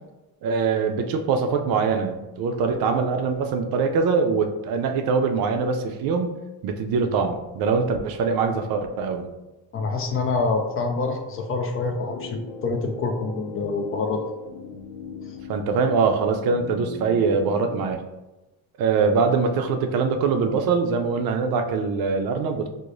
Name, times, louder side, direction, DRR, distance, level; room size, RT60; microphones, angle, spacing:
voice 1, 0.4-9.3 15.5-18.0 18.8-22.7, right 5 dB, 65° right, 5 dB, 0.5 m, -23 dB
voice 2, 9.7-14.2, left 3 dB, 35° left, 4 dB, 0.4 m, -26 dB
sound 1, 12.1-17.9, left 4 dB, 85° left, 0.6 m, -39 dB
4.6 x 2.1 x 2.5 m, 1.0 s
cardioid pair, 125°, 39 cm